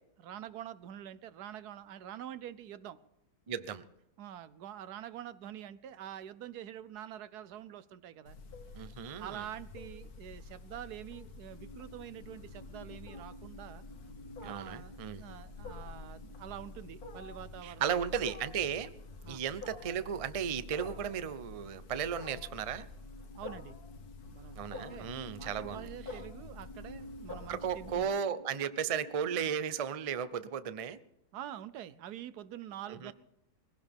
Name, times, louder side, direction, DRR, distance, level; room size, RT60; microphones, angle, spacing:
voice 1, 0.2-3.0 4.2-8.4 9.2-13.8 14.4-18.1 19.2-19.4 23.4-23.8 24.3-28.1 31.3-33.1, right 10 dB, 90° right, 1.3 m, -46 dB
voice 2, 3.5-3.9 8.8-9.5 14.4-15.2 17.6-18.9 19.2-22.9 24.6-25.9 27.3-31.0 32.9-33.1, right 8 dB, 50° right, 0.4 m, -35 dB
Wild animals, 8.3-28.0, left 3 dB, 80° left, 1.7 m, -48 dB
sound 1, 11.5-29.6, left 1 dB, 35° left, 0.8 m, -54 dB
21.5 x 16.5 x 3.5 m
omnidirectional pair, 1.6 m